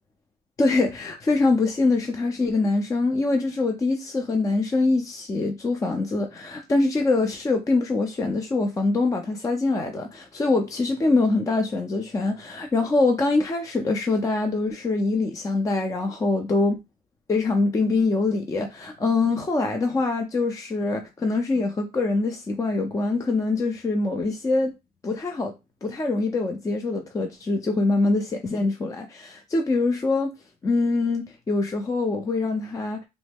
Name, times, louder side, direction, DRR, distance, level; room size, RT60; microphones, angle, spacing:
voice 1, 0.6-16.8 17.3-24.7 25.0-25.5 25.8-30.3 30.6-33.1, left 3 dB, 20° left, 0.4 m, -24 dB
3.0 x 2.1 x 3.3 m
cardioid pair, 110°, 17 cm